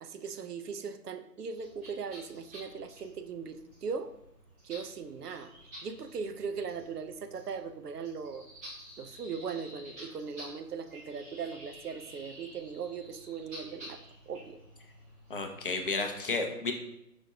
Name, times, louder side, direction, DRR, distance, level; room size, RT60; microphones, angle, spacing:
voice 1, 0.0-4.1 4.6-5.5 5.8-8.4 9.0-14.0 14.3-14.6, right 5 dB, 75° right, 10 dB, 0.6 m, -39 dB
sound 1, 1.6-16.2, equal, 10° right, 0.7 m, -51 dB
voice 2, 15.3-16.7, left 3 dB, 35° left, 4 dB, 0.5 m, -32 dB
5.1 x 3.6 x 2.6 m, 0.83 s
figure-of-eight pair, 135°, 48 cm